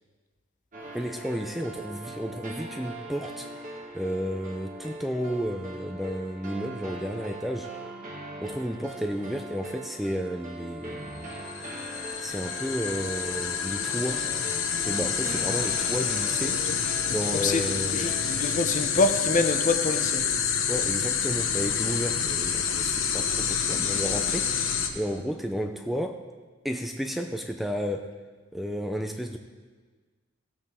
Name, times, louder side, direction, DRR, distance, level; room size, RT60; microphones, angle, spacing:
sound 1, 0.7-18.5, right 1 dB, 40° right, 1.8 m, -41 dB
voice 1, 0.9-3.5 3.9-7.7 8.4-11.3 11.6-11.7 12.2-14.3 14.8-16.7 17.1-18.2 20.7-26.2 26.6-28.1 28.5-29.4, equal, ahead, 5 dB, 0.4 m, -32 dB
sound 2, 11.3-24.9, left 7 dB, 75° left, 1.0 m, -28 dB
voice 2, 17.3-17.6 17.9-20.2, left 3 dB, 40° left, 8 dB, 0.7 m, -26 dB
16.0 x 8.0 x 3.7 m, 1.4 s
head